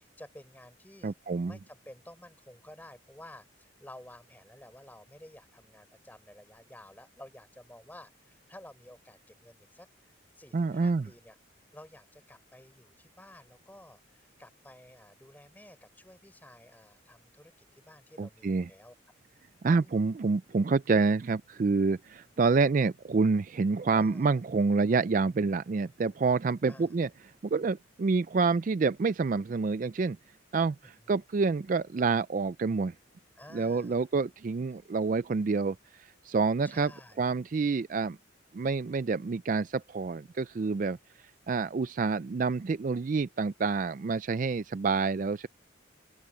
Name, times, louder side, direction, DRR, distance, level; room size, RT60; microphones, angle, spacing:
voice 1, 0.0-11.4 11.7-18.9 19.8-20.0 23.8-24.3 26.7-27.0 31.0-31.2 33.4-34.1 36.6-37.2, left 1 dB, 10° left, 4.3 m, -52 dB
voice 2, 1.0-1.6 10.5-11.1 18.2-18.7 19.6-27.1 27.4-30.2 30.5-32.9 33.5-36.9 37.2-38.2 38.5-45.5, right 4 dB, 40° right, 0.3 m, -28 dB
open air
head